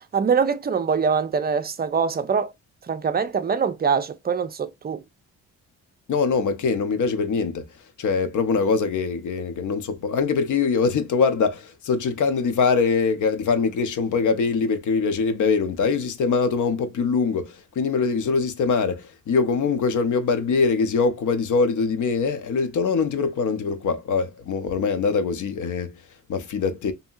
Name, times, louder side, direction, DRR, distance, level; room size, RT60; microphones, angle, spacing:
voice 1, 0.1-2.5 2.9-5.0, right 6 dB, 30° right, 0.4 m, -23 dB
voice 2, 6.1-7.6 8.0-25.9 26.3-26.9, left 5 dB, 60° left, 0.7 m, -23 dB
2.8 x 2.7 x 2.2 m
cardioid pair, 100°, 34 cm